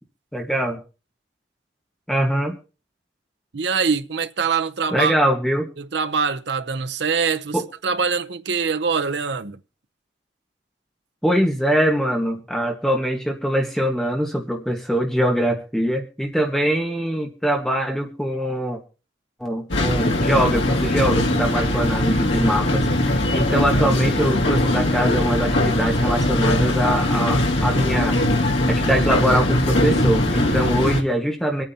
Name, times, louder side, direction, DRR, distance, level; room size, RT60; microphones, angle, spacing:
voice 1, 0.3-0.8 2.1-2.6 4.9-5.7 7.5-7.6 11.2-18.8 19.4-28.2 28.7-31.6, equal, ahead, 1.4 m, -23 dB
voice 2, 3.5-5.1 5.8-9.6, right 5 dB, 70° right, 0.7 m, -24 dB
sound 1, 19.7-31.0, left 1 dB, 90° left, 2.0 m, -20 dB
25.5 x 9.0 x 2.8 m
head